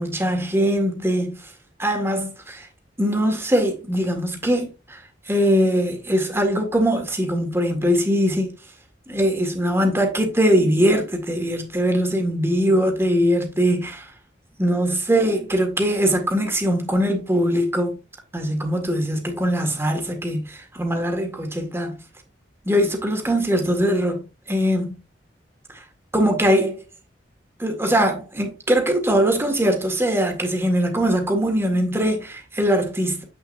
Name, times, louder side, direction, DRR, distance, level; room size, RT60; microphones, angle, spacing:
voice 1, 0.0-1.4 1.8-2.7 3.0-5.0 5.3-8.5 9.1-14.1 14.6-18.0 18.3-22.0 22.7-25.0 26.1-26.8 27.6-33.2, equal, 15° right, 1.8 m, -21 dB
8.0 x 6.4 x 2.6 m
head